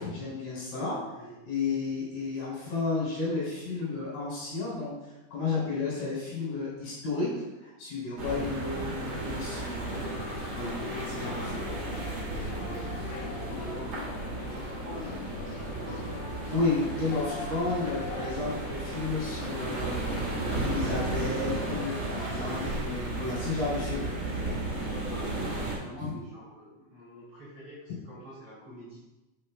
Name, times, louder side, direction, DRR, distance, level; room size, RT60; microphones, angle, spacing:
voice 1, 0.0-1.0 1.5-4.9 5.3-7.3 7.6-10.1 10.6-11.6 16.5-20.0 20.4-24.1 24.4-24.6 26.0-26.1, left 3 dB, 55° left, -7 dB, 4.5 m, -32 dB
voice 2, 0.9-1.4 9.6-10.2 10.7-11.6 12.2-12.9 13.3-15.1 15.5-16.1 22.4-23.8 24.9-29.0, right 1 dB, 35° right, -11 dB, 2.9 m, -46 dB
sound 1, 8.2-25.8, right 2 dB, 70° right, 1.1 m, -34 dB
sound 2, 9.5-22.8, left 6 dB, 85° left, 3.2 m, -42 dB
8.7 x 7.2 x 2.2 m, 1.0 s
omnidirectional pair, 5.5 m